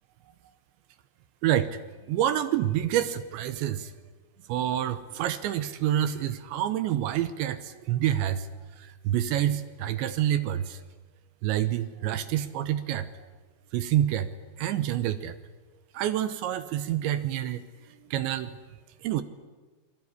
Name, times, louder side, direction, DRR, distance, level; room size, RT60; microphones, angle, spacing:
voice 1, 1.4-1.8 2.1-3.9 4.5-8.5 8.8-10.8 11.4-13.1 13.7-14.3 14.6-15.4 15.9-17.6 18.1-18.6 19.0-19.2, right 11 dB, 75° right, 12 dB, 3.0 m, -27 dB
27.0 x 22.0 x 9.9 m, 1.3 s
omnidirectional pair, 5.8 m